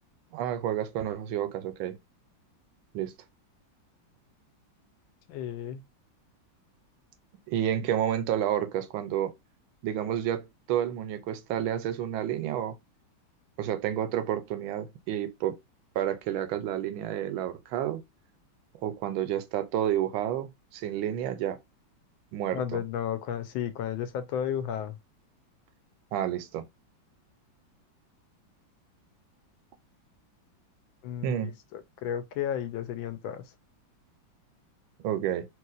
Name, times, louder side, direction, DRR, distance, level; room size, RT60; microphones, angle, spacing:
voice 1, 0.3-2.0 2.9-3.1 7.5-9.3 9.8-12.8 13.6-15.6 16.0-18.0 18.8-21.6 22.3-22.8 26.1-26.6 31.2-31.5 35.0-35.5, right 11 dB, 90° right, 1.4 m, -30 dB
voice 2, 5.3-5.8 22.5-25.0 31.0-33.4, left 9 dB, 85° left, 1.4 m, -33 dB
3.2 x 3.1 x 2.4 m
omnidirectional pair, 2.1 m